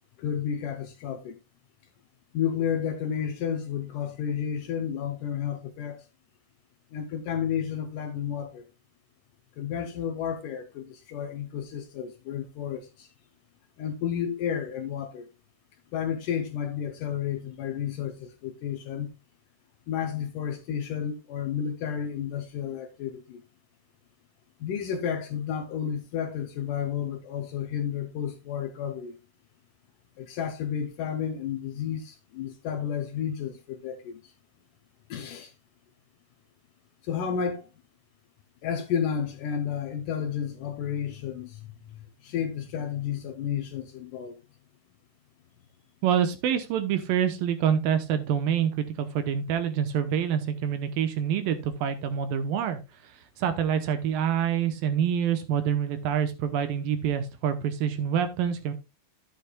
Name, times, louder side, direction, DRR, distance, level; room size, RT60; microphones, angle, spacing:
voice 1, 0.2-1.4 2.3-6.1 6.9-8.6 9.6-13.1 13.8-15.3 15.9-19.1 19.9-23.4 24.6-29.2 30.2-34.3 35.1-35.5 37.0-37.7 38.6-44.4, left 8 dB, 75° left, 2.1 m, -31 dB
voice 2, 46.0-52.8 53.4-58.7, right 8 dB, 75° right, 2.4 m, -26 dB
11.5 x 8.6 x 2.3 m
omnidirectional pair, 4.4 m